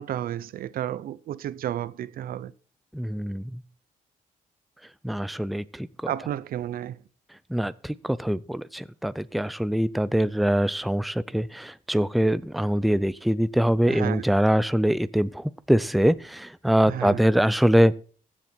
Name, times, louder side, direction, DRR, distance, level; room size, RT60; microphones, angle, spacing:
voice 1, 0.0-2.5 6.0-7.0 13.9-14.2 16.8-17.2, right 11 dB, 85° right, 0.7 m, -32 dB
voice 2, 2.9-3.4 5.0-6.1 7.5-17.9, equal, ahead, 0.5 m, -23 dB
15.0 x 7.5 x 4.4 m
cardioid pair, 110°, 15 cm